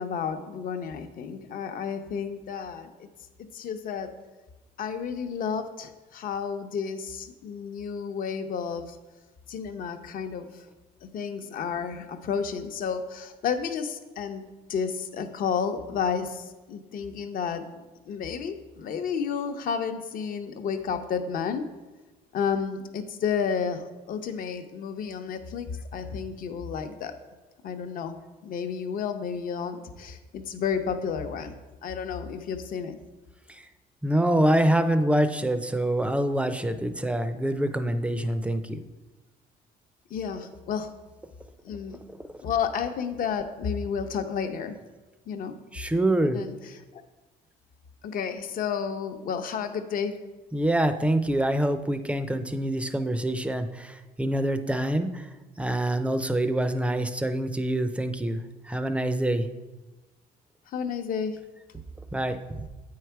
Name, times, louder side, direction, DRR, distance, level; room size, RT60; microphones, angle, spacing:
voice 1, 0.0-3.1 3.5-4.1 4.8-9.0 9.5-10.5 11.0-14.4 14.7-17.7 18.1-21.6 22.3-27.1 27.6-28.2 28.4-31.6 31.8-33.0 40.1-40.9 41.6-42.0 42.4-44.8 45.3-45.5 46.3-46.5 46.9-47.0 48.0-50.1 60.7-61.4, left 6 dB, 55° left, 8 dB, 0.8 m, -31 dB
voice 2, 34.0-38.8 42.1-42.2 45.7-46.4 50.5-55.3 55.6-59.5 62.1-62.7, right 1 dB, 5° right, 10 dB, 0.5 m, -26 dB
8.5 x 4.8 x 4.6 m, 1.2 s
cardioid pair, 110°, 17 cm